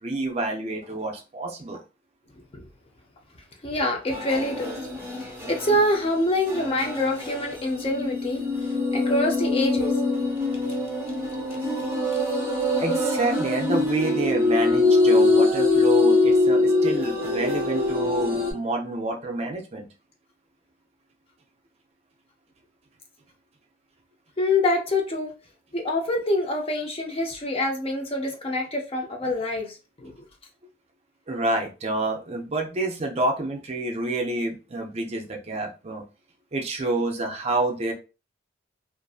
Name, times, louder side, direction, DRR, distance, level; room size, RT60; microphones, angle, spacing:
voice 1, 0.0-1.8 12.8-19.9 31.3-36.0 36.5-37.9, right 2 dB, 30° right, 2 dB, 0.4 m, -28 dB
voice 2, 3.6-4.8 5.1-9.9 24.4-25.3 25.7-30.1, left 1 dB, 25° left, 1 dB, 0.5 m, -26 dB
sound 1, 4.1-6.0 6.5-18.5, left 2 dB, 10° right, 0.8 m, -23 dB
2.5 x 2.5 x 2.3 m, 0.32 s
head